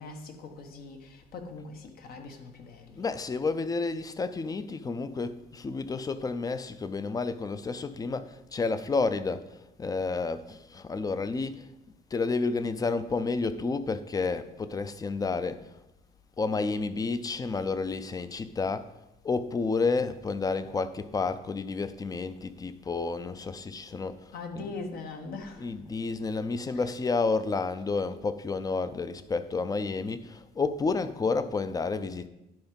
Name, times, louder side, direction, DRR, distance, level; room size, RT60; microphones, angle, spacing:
voice 1, 0.0-3.0 24.3-25.7 26.7-27.0, left 3 dB, 65° left, 1.4 m, -41 dB
voice 2, 3.0-11.6 12.1-15.7 16.4-18.9 19.2-24.7 25.6-32.3, left 4 dB, 20° left, 0.6 m, -30 dB
10.5 x 4.8 x 5.3 m
cardioid pair, 110°, 17 cm